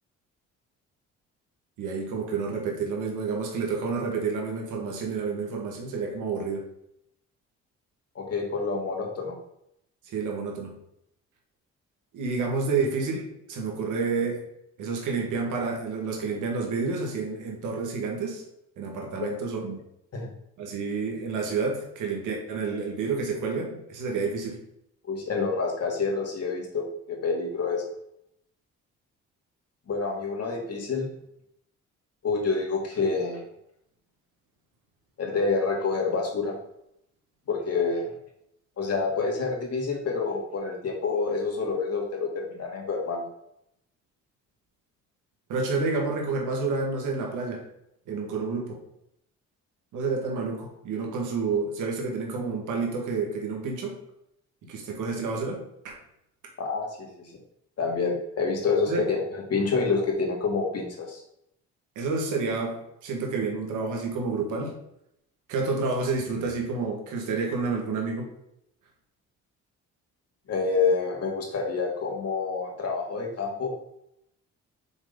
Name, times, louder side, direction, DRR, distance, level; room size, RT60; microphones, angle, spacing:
voice 1, 1.8-6.7 10.1-10.8 12.1-14.4 14.8-18.4 18.8-19.8 20.6-24.6 45.5-47.6 48.1-48.8 49.9-54.0 54.6-56.0 58.9-59.1 62.0-64.8 65.5-68.3, right 4 dB, 80° right, 1 dB, 1.7 m, -29 dB
voice 2, 8.2-9.3 19.2-19.3 20.1-20.3 25.1-27.8 29.9-31.1 32.2-33.4 35.2-36.5 37.5-38.1 38.8-43.2 56.6-57.3 57.8-61.2 70.5-73.7, left 4 dB, 55° left, 0 dB, 2.3 m, -28 dB
6.2 x 3.9 x 5.2 m, 0.77 s
cardioid pair, 90°, 30 cm